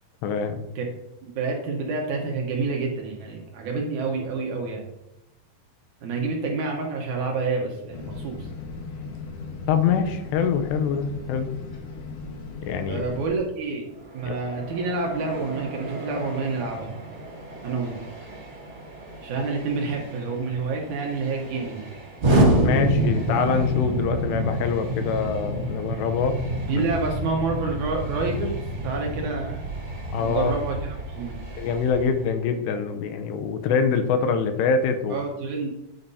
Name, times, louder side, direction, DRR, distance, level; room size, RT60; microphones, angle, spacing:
voice 1, 0.2-0.6 9.7-11.5 12.6-13.0 14.3-14.4 22.6-26.4 30.1-30.5 31.6-35.2, left 6 dB, 85° left, 8 dB, 3.0 m, -24 dB
voice 2, 1.2-4.8 6.0-8.5 12.9-13.9 14.1-16.9 17.6-18.0 19.2-21.9 26.7-29.6 30.2-30.8 31.1-31.4 35.1-35.7, right 4 dB, 75° right, 0 dB, 1.8 m, -28 dB
sound 1, 7.9-13.4, left 3 dB, 65° left, 1.8 m, -37 dB
Train, 13.8-32.7, right 2 dB, 15° right, 2.3 m, -42 dB
Explosion, 22.2-32.1, right 1 dB, 50° right, 1.5 m, -26 dB
9.1 x 9.0 x 2.7 m, 0.91 s
omnidirectional pair, 4.8 m